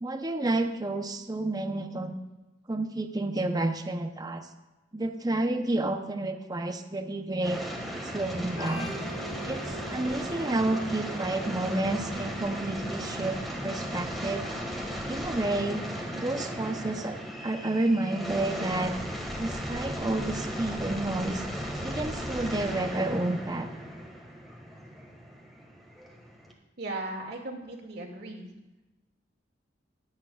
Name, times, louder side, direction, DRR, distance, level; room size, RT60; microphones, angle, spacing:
voice 1, 0.0-2.1 2.7-4.5 4.9-7.6 8.0-8.9 9.5-13.4 13.6-14.4 15.1-15.9 16.2-17.2 17.4-18.9 19.4-21.4 21.8-23.7, right 2 dB, 20° right, 6 dB, 0.7 m, -30 dB
sound 1, 7.4-26.5, equal, ahead, 1.7 m, -36 dB
Organ, 8.5-16.0, right 2 dB, 70° left, 3.8 m, -46 dB
voice 2, 26.8-28.5, right 2 dB, 60° right, 0 dB, 2.2 m, -37 dB
22.0 x 8.7 x 2.4 m, 1.1 s
head